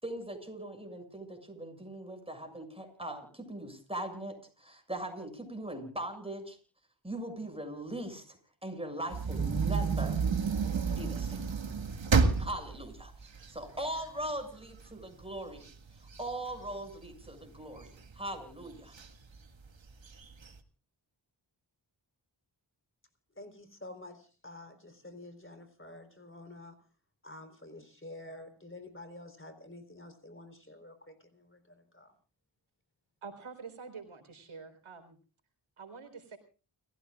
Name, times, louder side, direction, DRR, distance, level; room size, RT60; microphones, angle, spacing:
voice 1, 0.0-6.6 7.0-8.4 8.6-10.2 10.9-11.5 12.4-13.1 13.5-15.7 16.2-19.0, right 1 dB, 10° right, 5 dB, 7.0 m, -40 dB
sound 1, 9.1-14.3 14.8-14.9 15.2-17.3 17.8-18.3 18.9-19.1 19.4-19.5 19.9-20.5, right 5 dB, 70° right, 1.9 m, -30 dB
voice 2, 23.4-26.7 27.2-31.6 31.9-32.1, left 2 dB, 25° left, 8 dB, 3.9 m, -49 dB
voice 3, 33.2-35.2 35.8-36.4, right 5 dB, 85° right, 7 dB, 4.2 m, -47 dB
30.0 x 15.5 x 2.4 m, 0.37 s
wide cardioid pair, 60°, 47 cm